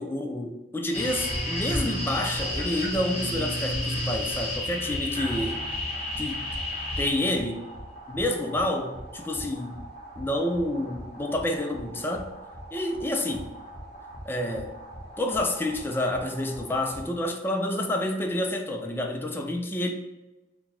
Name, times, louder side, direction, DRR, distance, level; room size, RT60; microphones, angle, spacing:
voice 1, 0.0-5.6 6.2-6.4 7.0-7.6 8.1-9.8 10.2-12.3 12.7-13.5 14.3-14.7 15.2-19.9, left 1 dB, 10° left, 0.4 m, -29 dB
sound 1, 0.9-17.0, left 1 dB, 35° left, 1.0 m, -34 dB
3.9 x 2.2 x 4.3 m
head